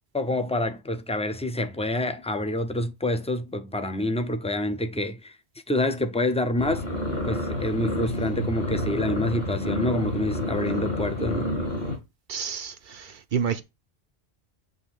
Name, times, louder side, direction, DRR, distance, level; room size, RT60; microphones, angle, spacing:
voice 1, 0.1-5.4 5.7-6.8 7.2-11.5, left 1 dB, 10° left, 0.4 m, -27 dB
sound 1, 6.6-12.0, left 1 dB, 60° left, 2.8 m, -29 dB
voice 2, 12.3-13.6, right 7 dB, 55° right, 0.7 m, -29 dB
7.9 x 2.7 x 5.2 m
omnidirectional pair, 1.1 m